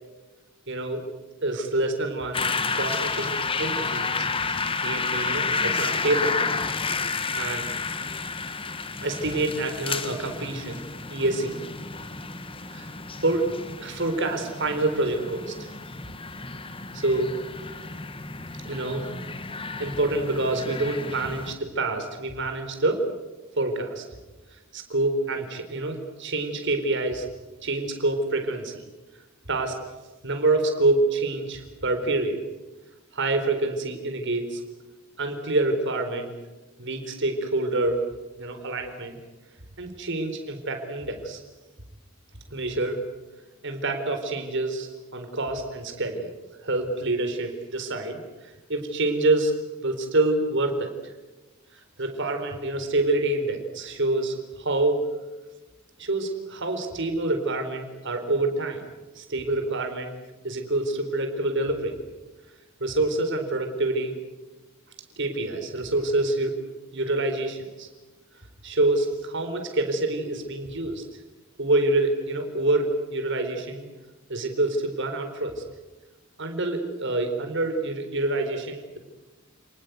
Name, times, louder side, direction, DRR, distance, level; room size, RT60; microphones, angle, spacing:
voice 1, 0.7-1.0 1.4-2.4 2.7-6.4 6.8-7.7 9.0-10.8 11.1-11.6 12.7-12.9 13.2-13.5 13.8-15.7 16.9-17.4 18.6-19.1 19.8-23.1 23.6-24.0 24.7-27.3 27.6-28.8 29.5-29.8 30.2-32.4 33.1-34.6 35.2-36.3 36.8-38.1 38.4-39.2 39.8-41.4 42.5-43.0 43.6-46.3 46.6-48.2 48.7-49.5 49.8-50.9 52.0-55.0 56.0-58.8 59.2-60.2 60.4-62.0 62.8-64.2 65.2-66.6 66.9-67.9 68.6-71.0 71.6-73.9 74.3-75.6 76.4-79.0, right 2 dB, 60° right, 6 dB, 4.2 m, -27 dB
sound 1, 2.3-21.5, left 4 dB, 25° left, 1.5 m, -31 dB
30.0 x 20.0 x 8.2 m, 1.1 s
head